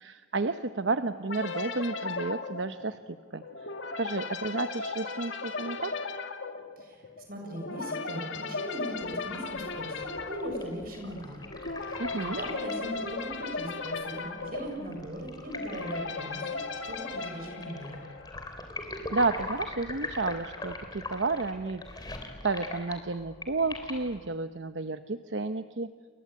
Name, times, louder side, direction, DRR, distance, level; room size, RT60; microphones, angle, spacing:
voice 1, 0.0-3.4 4.0-5.9 12.0-12.4 19.1-22.1 22.4-25.9, right 3 dB, 75° right, 9 dB, 0.9 m, -31 dB
sound 1, 1.3-18.5, left 4 dB, 80° left, 2.1 m, -37 dB
voice 2, 6.8-11.5 11.8-16.6 16.9-18.0, equal, 50° right, 3 dB, 7.4 m, -39 dB
sound 2, 9.0-24.3, left 2 dB, 20° left, 3.4 m, -42 dB
29.5 x 22.5 x 8.7 m, 1.5 s
head